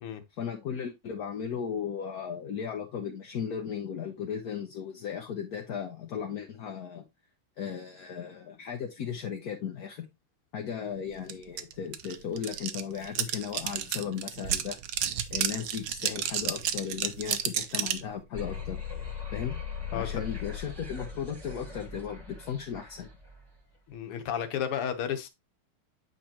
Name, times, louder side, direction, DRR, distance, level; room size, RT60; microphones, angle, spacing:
voice 1, 0.3-7.0 7.6-10.1 10.5-14.8 15.3-18.8 19.3-19.6 19.9-23.1, left 7 dB, 55° left, 1.1 m, -36 dB
sound 1, 11.3-11.4 11.6-18.1, right 10 dB, 65° right, 1.3 m, -31 dB
sound 2, 18.3-23.5, left 6 dB, 10° right, 1.5 m, -39 dB
voice 2, 19.9-20.2 23.9-25.3, left 8 dB, 80° left, 1.9 m, -33 dB
8.5 x 4.9 x 2.9 m
omnidirectional pair, 2.4 m